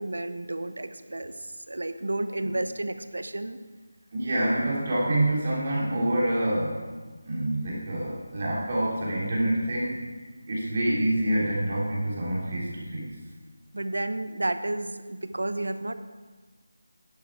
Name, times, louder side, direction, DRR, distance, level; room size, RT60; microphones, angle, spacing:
voice 1, 0.0-3.6 13.7-15.9, right 2 dB, 80° right, 10 dB, 0.8 m, -31 dB
voice 2, 4.1-6.9 7.2-10.0 10.5-13.1, right 1 dB, 40° right, -5 dB, 3.2 m, -27 dB
11.0 x 8.5 x 4.7 m, 1.3 s
figure-of-eight pair, 165°, 0 cm